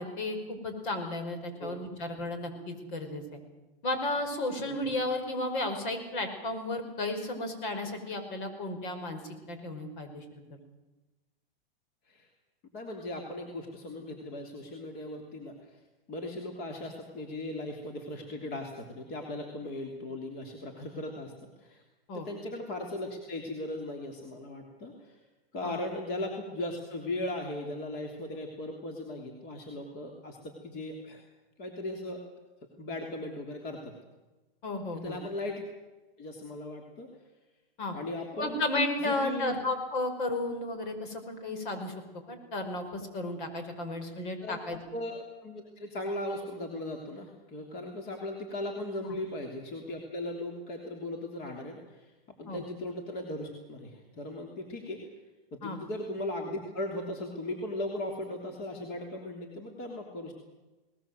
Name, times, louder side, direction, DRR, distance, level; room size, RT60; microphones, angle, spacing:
voice 1, 0.0-3.2 3.8-10.6 22.1-22.3 25.6-25.8 34.6-35.2 37.8-38.0 38.3-41.9 42.3-44.8 49.0-49.2 52.5-52.6 55.6-55.8, left 2 dB, 55° left, 7 dB, 5.5 m, -33 dB
voice 2, 12.7-15.8 16.1-21.3 21.6-21.8 22.1-25.2 25.5-31.2 31.6-32.2 32.8-33.9 34.9-35.6 36.2-37.1 37.9-38.6 39.0-39.6 44.4-52.1 52.4-55.0 55.5-60.3, left 1 dB, 35° left, 2 dB, 3.2 m, -38 dB
20.5 x 19.5 x 7.9 m, 1.1 s
hypercardioid pair, 140°, 30 cm